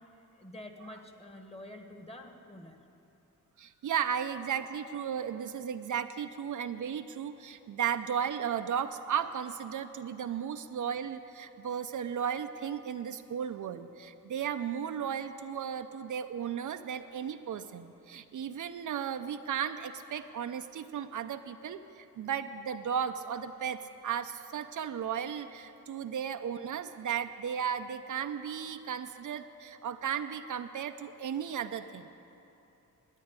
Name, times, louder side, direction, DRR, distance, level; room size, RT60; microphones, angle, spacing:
voice 1, 0.3-2.8, left 1 dB, 20° left, 4 dB, 1.4 m, -47 dB
voice 2, 3.6-32.1, right 8 dB, 65° right, 8 dB, 0.6 m, -35 dB
11.5 x 9.1 x 9.6 m, 3.0 s
cardioid pair, 90°, 34 cm